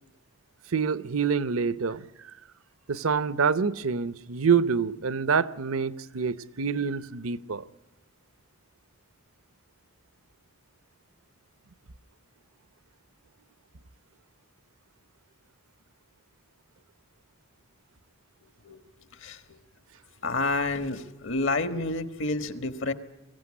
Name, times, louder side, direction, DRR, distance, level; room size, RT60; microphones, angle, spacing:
voice 1, 0.7-2.1 2.9-7.6, right 5 dB, 80° right, 0.8 m, -26 dB
voice 2, 18.6-19.6 20.2-22.9, left 2 dB, 65° left, 1.5 m, -30 dB
23.0 x 16.5 x 9.7 m
head